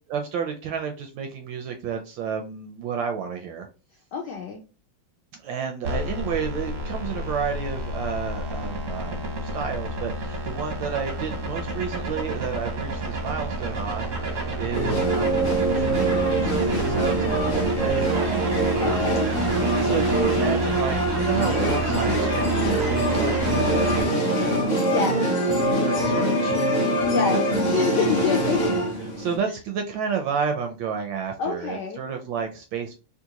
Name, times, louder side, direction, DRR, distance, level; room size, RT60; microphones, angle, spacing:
voice 1, 0.1-3.7 5.4-18.4 19.8-27.1 27.3-27.4 29.2-33.0, right 6 dB, 75° right, 5 dB, 1.1 m, -31 dB
voice 2, 4.1-4.6 18.8-19.3 24.9-25.2 27.0-27.4 27.7-28.8 31.4-32.0, left 5 dB, 75° left, 1 dB, 0.9 m, -26 dB
sound 1, 5.8-24.0, right 3 dB, 60° right, 0.8 m, -29 dB
sound 2, 14.7-29.4, right 1 dB, 55° left, 0.6 m, -23 dB
3.8 x 2.4 x 2.8 m, 0.32 s
omnidirectional pair, 2.4 m